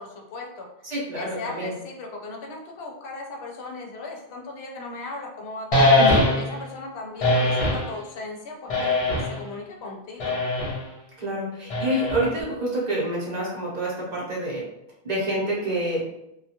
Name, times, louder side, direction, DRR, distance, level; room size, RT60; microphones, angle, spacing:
voice 1, 0.0-0.7 1.2-6.0 6.4-10.4, left 3 dB, 80° left, 0 dB, 0.8 m, -37 dB
voice 2, 0.8-1.7 6.0-6.2 11.2-14.6 15.0-16.0, right 1 dB, 45° right, -5 dB, 0.8 m, -27 dB
sound 1, 5.7-6.6 7.2-7.9 8.7-9.4 10.2-10.8 11.7-12.4, left 2 dB, 45° left, 0.5 m, -21 dB
2.2 x 2.2 x 2.8 m, 0.83 s
omnidirectional pair, 1.1 m